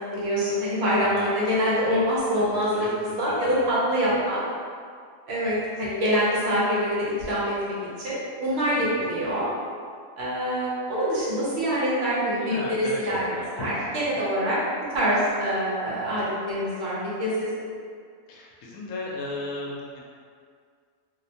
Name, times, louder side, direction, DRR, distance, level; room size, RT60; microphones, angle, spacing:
voice 1, 0.1-4.4 5.3-9.5 10.2-14.6 14.9-17.6, equal, 60° right, -8 dB, 1.0 m, -25 dB
voice 2, 1.6-2.0 2.4-3.7 4.1-4.3 5.4-5.9 8.7-9.1 12.4-14.2 18.3-20.0, left 2 dB, 85° left, -3 dB, 1.0 m, -36 dB
2.6 x 2.1 x 2.7 m, 2.1 s
omnidirectional pair, 1.3 m